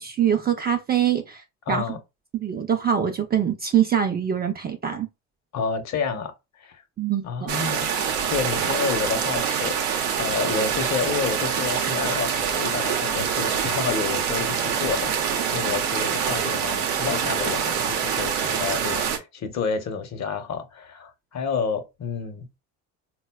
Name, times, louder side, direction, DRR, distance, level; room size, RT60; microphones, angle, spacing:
voice 1, 0.0-1.9 2.3-5.1 7.0-7.5, right 9 dB, 25° right, 0.4 m, -24 dB
voice 2, 1.7-2.0 5.5-6.3 6.6-6.8 7.2-7.9 8.3-9.9 10.2-22.5, left 6 dB, 45° left, 0.8 m, -29 dB
sound 1, 7.5-19.2, right 7 dB, 90° right, 0.7 m, -25 dB
3.9 x 2.2 x 2.2 m
supercardioid pair, 75°, 38 cm